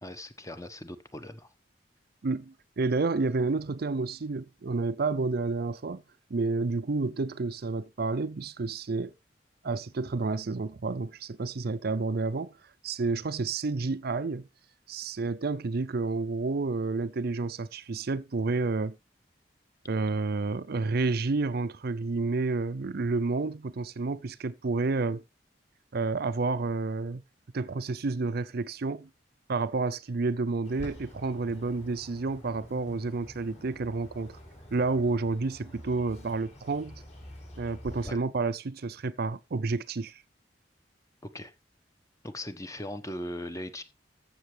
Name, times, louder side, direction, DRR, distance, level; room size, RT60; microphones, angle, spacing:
voice 1, 0.0-1.5 38.0-38.2 41.3-41.5 42.2-43.8, left 1 dB, 20° left, 1.2 m, -39 dB
voice 2, 2.2-6.0 6.3-9.1 9.6-12.5 12.8-14.5 14.9-19.0 19.9-25.2 25.9-27.2 27.5-29.1 29.5-34.4 34.7-37.0 37.6-40.2, right 3 dB, 60° right, 0.5 m, -30 dB
Bird, 30.6-38.1, equal, 40° left, 5.0 m, -47 dB
14.0 x 6.8 x 3.3 m
head